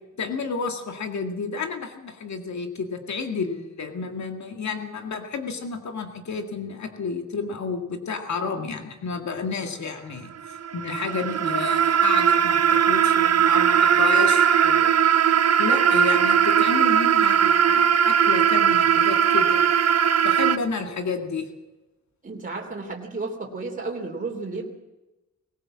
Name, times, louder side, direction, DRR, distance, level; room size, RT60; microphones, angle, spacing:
voice 1, 0.2-10.3 10.7-14.9 15.6-19.6 20.2-21.5, left 4 dB, 60° left, 5 dB, 2.1 m, -31 dB
sound 1, 10.4-20.6, right 8 dB, 55° right, 0.7 m, -19 dB
voice 2, 22.2-24.7, right 3 dB, 25° right, 0 dB, 3.2 m, -32 dB
20.5 x 18.0 x 7.5 m, 1.1 s
wide cardioid pair, 170°, 31 cm